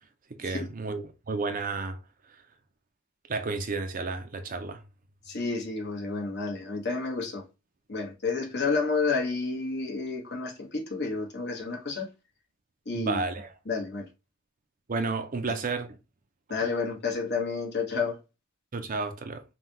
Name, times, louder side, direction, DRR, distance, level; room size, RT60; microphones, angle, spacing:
voice 1, 0.3-2.0 3.3-4.8 12.9-13.5 14.9-16.0 18.7-19.4, right 3 dB, 45° right, 0.6 m, -32 dB
voice 2, 5.3-7.4 7.9-12.1 12.8-13.2 13.7-14.1 16.5-18.2, left 4 dB, 55° left, 1.5 m, -30 dB
5.7 x 2.4 x 2.9 m
head